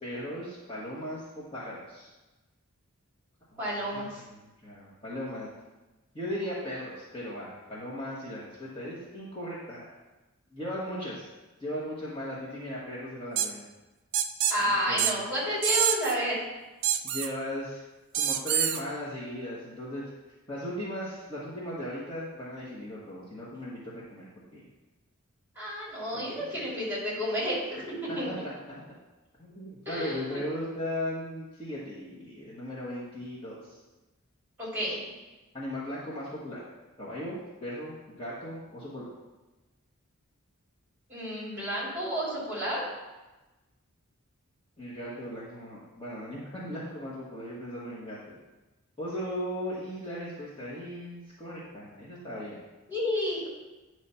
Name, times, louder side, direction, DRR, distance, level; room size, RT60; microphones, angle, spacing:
voice 1, 0.0-2.1 3.5-5.5 6.1-9.8 10.5-11.3 11.6-13.6 14.6-15.2 17.0-17.8 18.1-20.0 20.5-24.7 26.1-26.7 28.1-28.8 29.4-33.8 35.5-36.6 37.0-39.1 44.8-48.4 49.0-52.6, equal, 25° left, -8 dB, 1.1 m, -37 dB
voice 2, 3.6-4.2 14.5-16.4 25.6-28.3 29.9-30.4 34.6-35.0 41.1-42.8 52.9-53.5, equal, 10° right, -7 dB, 2.5 m, -31 dB
sound 1, 13.4-13.5 14.1-14.6 15.0-15.1 15.6-16.1 16.8-17.3 18.1-18.8, right 9 dB, 55° right, 0.4 m, -26 dB
9.2 x 3.2 x 5.5 m, 1.1 s
head